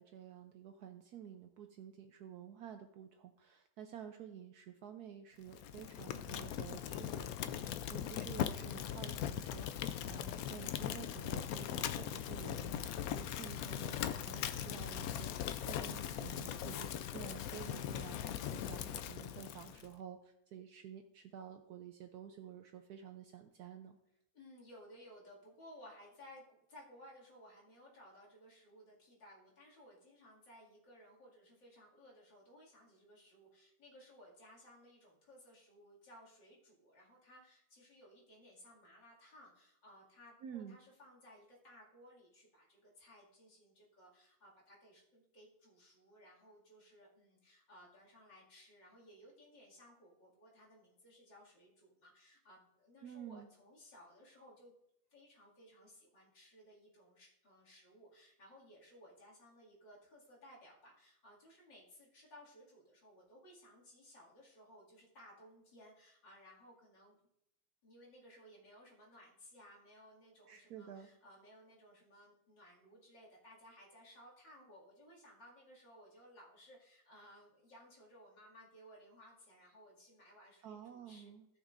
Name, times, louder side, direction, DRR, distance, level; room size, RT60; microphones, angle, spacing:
voice 1, 0.0-24.0 40.4-40.8 53.0-53.5 70.5-71.1 80.6-81.5, right 9 dB, 70° right, 7 dB, 0.9 m, -51 dB
Fire, 5.5-19.9, left 10 dB, 90° left, 0.7 m, -40 dB
voice 2, 24.3-54.7 55.1-67.2 67.8-81.3, equal, 65° left, -4 dB, 2.9 m, -60 dB
16.5 x 6.3 x 2.5 m, 0.80 s
omnidirectional pair, 2.1 m